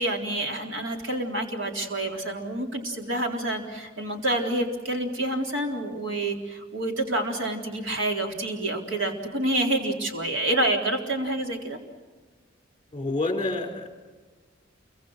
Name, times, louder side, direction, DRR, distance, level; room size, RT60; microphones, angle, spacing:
voice 1, 0.0-11.8, right 1 dB, 80° right, 2 dB, 3.9 m, -28 dB
voice 2, 12.9-13.9, left 2 dB, 25° left, 3 dB, 5.5 m, -28 dB
29.0 x 24.5 x 6.4 m, 1.4 s
head